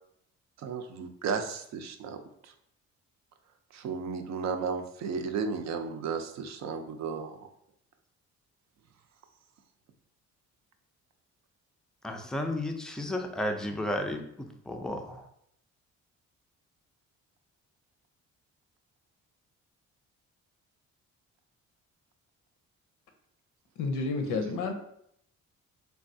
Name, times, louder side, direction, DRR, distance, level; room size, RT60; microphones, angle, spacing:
voice 1, 0.6-2.5 3.7-7.5, right 5 dB, 65° right, 7 dB, 0.5 m, -34 dB
voice 2, 12.0-15.2, left 1 dB, ahead, 4 dB, 0.3 m, -33 dB
voice 3, 23.8-24.7, left 3 dB, 85° left, 5 dB, 0.6 m, -30 dB
3.3 x 2.3 x 2.6 m, 0.72 s
cardioid pair, 90°, 30 cm